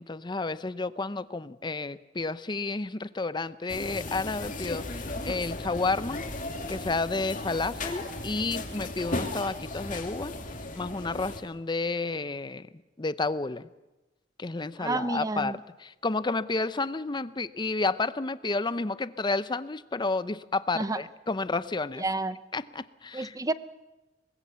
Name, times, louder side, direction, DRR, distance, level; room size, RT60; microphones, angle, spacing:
voice 1, 0.0-6.2 6.7-10.3 10.7-12.7 13.0-13.7 14.4-22.0 22.5-23.3, left 3 dB, 25° left, 0.7 m, -31 dB
sound 1, 3.7-11.4, left 2 dB, 45° left, 2.7 m, -36 dB
voice 2, 14.8-15.6 20.7-21.0 22.0-22.4 23.1-23.5, right 2 dB, 20° right, 0.7 m, -30 dB
24.0 x 20.0 x 7.0 m
head